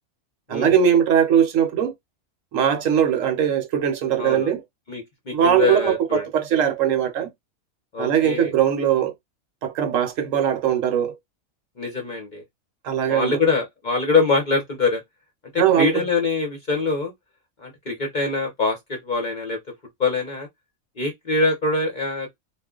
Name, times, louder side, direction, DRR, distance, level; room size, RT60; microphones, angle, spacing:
voice 1, 0.5-1.9 2.5-4.6 5.3-7.3 8.0-9.1 9.6-11.2 12.8-13.4 15.6-16.0, right 9 dB, 70° right, 1.0 m, -20 dB
voice 2, 4.2-4.5 4.9-6.2 7.9-8.5 11.8-12.4 13.1-15.0 15.5-17.1 17.6-19.6 20.0-20.5 21.0-22.3, left 3 dB, 45° left, 0.7 m, -24 dB
2.4 x 2.1 x 3.6 m
omnidirectional pair, 1.5 m